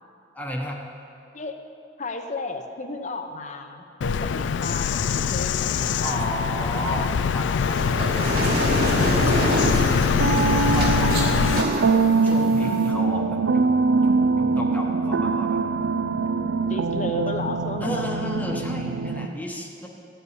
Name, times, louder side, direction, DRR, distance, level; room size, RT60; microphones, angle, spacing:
voice 1, 0.3-0.8 6.0-7.8 8.2-8.6 9.5-9.9 10.5-11.3 12.2-13.7 14.0-15.6 17.8-19.9, equal, 10° left, -1 dB, 1.0 m, -33 dB
voice 2, 2.0-6.3 16.7-18.0, left 2 dB, 40° left, 6 dB, 0.8 m, -33 dB
Bird vocalization bird call bird song, 4.0-11.6, left 6 dB, 75° left, 0.3 m, -23 dB
sound 1, 7.6-12.9, equal, 55° right, 2.2 m, -27 dB
sound 2, 10.2-19.3, right 4 dB, 85° right, 0.5 m, -23 dB
14.0 x 5.7 x 9.5 m, 2.6 s
head